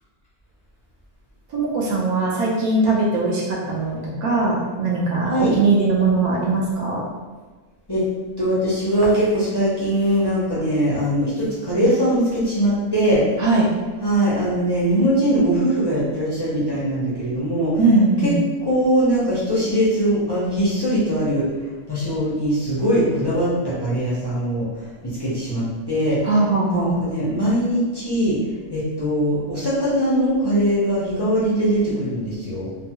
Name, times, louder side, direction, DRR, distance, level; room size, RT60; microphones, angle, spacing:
voice 1, 1.5-7.0 13.4-13.7 17.8-18.4 26.2-26.9, right 3 dB, 75° right, -4 dB, 1.1 m, -20 dB
voice 2, 8.4-13.2 14.0-17.8 18.2-18.3 18.6-21.5 21.9-26.2 26.7-28.4 28.7-32.7, equal, 40° left, -9 dB, 0.3 m, -21 dB
3.0 x 2.3 x 2.8 m, 1.4 s
omnidirectional pair, 1.6 m